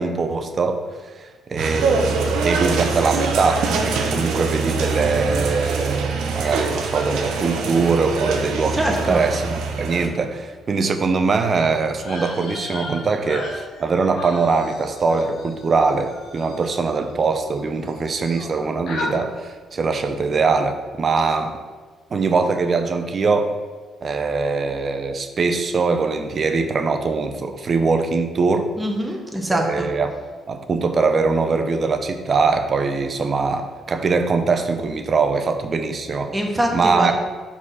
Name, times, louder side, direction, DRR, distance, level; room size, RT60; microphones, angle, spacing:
voice 1, 0.0-21.6 22.1-23.6 24.0-28.7 29.5-30.1 30.5-36.3 36.7-37.1, right 4 dB, 45° right, 7 dB, 0.7 m, -22 dB
sound 1, 1.6-10.1, right 4 dB, 85° right, 0.8 m, -23 dB
voice 2, 8.7-9.2 28.8-29.9 36.3-37.1, right 1 dB, 10° right, 1 dB, 1.2 m, -23 dB
sound 2, 12.0-17.6 17.8-18.6 18.9-19.1, left 2 dB, 70° left, 1.2 m, -35 dB
4.9 x 4.2 x 5.6 m, 1.4 s
cardioid pair, 90°, 0 cm